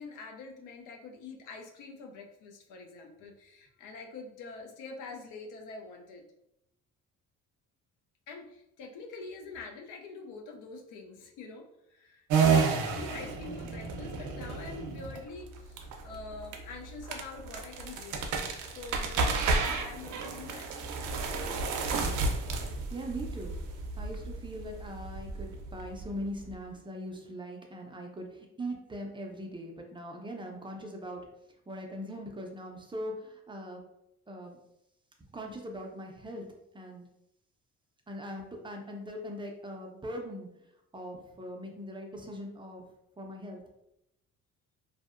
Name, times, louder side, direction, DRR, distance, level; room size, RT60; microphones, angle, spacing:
voice 1, 0.0-6.2 8.3-18.4 18.6-21.1, left 4 dB, 85° left, 2 dB, 0.5 m, -45 dB
sound 1, 12.3-26.5, right 4 dB, 85° right, 0.5 m, -31 dB
voice 2, 22.9-23.6 24.0-31.2 31.7-33.8 34.3-34.6 35.3-36.5 36.7-37.0 38.1-40.5 40.9-42.8 43.2-43.6, equal, 15° right, 1 dB, 0.4 m, -41 dB
2.6 x 2.1 x 2.4 m, 0.83 s
cardioid pair, 90°, 30 cm